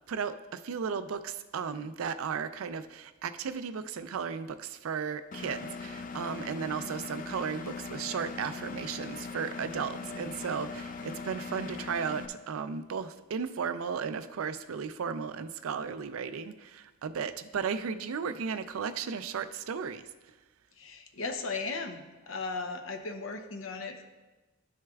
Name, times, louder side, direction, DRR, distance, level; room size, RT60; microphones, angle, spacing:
voice 1, 0.1-20.0, right 6 dB, 85° right, 11 dB, 0.4 m, -35 dB
Engine, 5.3-12.3, left 4 dB, 40° left, 0.4 m, -40 dB
voice 2, 20.8-22.0 22.3-24.0, left 4 dB, 70° left, 6 dB, 0.7 m, -36 dB
12.0 x 6.4 x 2.3 m, 1.1 s
head